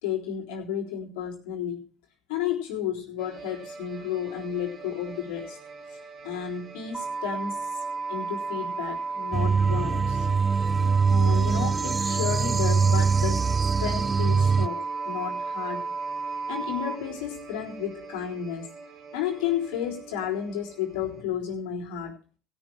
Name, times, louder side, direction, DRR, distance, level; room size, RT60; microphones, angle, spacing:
voice 1, 0.0-1.8 2.3-5.6 5.9-7.8 8.1-10.3 11.1-13.5 13.8-15.9 16.5-18.7 19.1-22.2, left 8 dB, 80° left, 3.7 m, -32 dB
sound 1, 3.2-21.2, right 4 dB, 55° right, 2.9 m, -44 dB
sound 2, 6.9-17.0, right 4 dB, 15° right, 1.6 m, -32 dB
sound 3, 9.3-14.7, right 5 dB, 30° right, 0.5 m, -23 dB
16.5 x 6.2 x 6.1 m
supercardioid pair, 70°, 0 cm